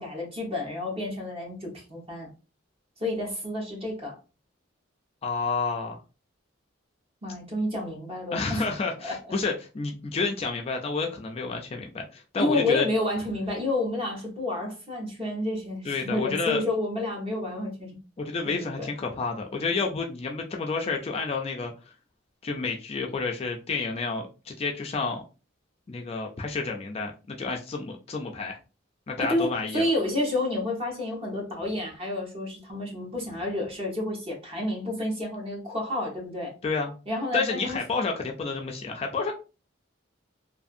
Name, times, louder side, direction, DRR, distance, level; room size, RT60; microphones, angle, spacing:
voice 1, 0.0-2.3 3.0-4.1 7.2-8.7 9.0-9.2 12.4-18.0 18.4-18.9 29.2-36.5 37.1-37.8, left 1 dB, 30° right, 1.1 m, -30 dB
voice 2, 5.2-6.0 8.3-12.9 15.8-16.6 18.2-21.7 22.4-25.2 25.9-28.6 29.1-29.8 36.6-36.9 37.3-39.3, left 4 dB, 30° left, 0.3 m, -30 dB
2.6 x 2.6 x 2.4 m
head